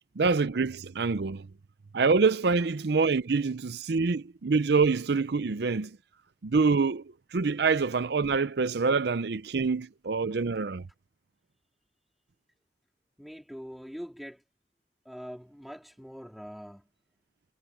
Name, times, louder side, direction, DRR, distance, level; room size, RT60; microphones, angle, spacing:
voice 1, 0.2-1.5 1.9-6.0 6.4-7.0 7.3-10.8, right 4 dB, 65° right, 0.6 m, -26 dB
voice 2, 13.2-14.4 15.1-16.9, equal, ahead, 3.7 m, -43 dB
head